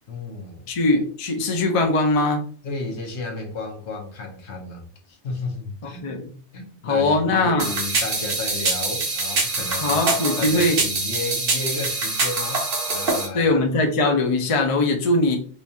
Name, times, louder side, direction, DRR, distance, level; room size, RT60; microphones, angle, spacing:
voice 1, 0.1-0.7 2.6-6.2 6.5-13.5, left 3 dB, 70° left, 1.2 m, -33 dB
voice 2, 0.7-2.5 5.8-6.3 6.8-7.7 9.8-10.8 13.3-15.4, left 2 dB, 40° left, 0.5 m, -21 dB
sound 1, 7.6-13.3, right 3 dB, 55° right, 1.1 m, -24 dB
4.7 x 2.3 x 2.7 m
omnidirectional pair, 1.2 m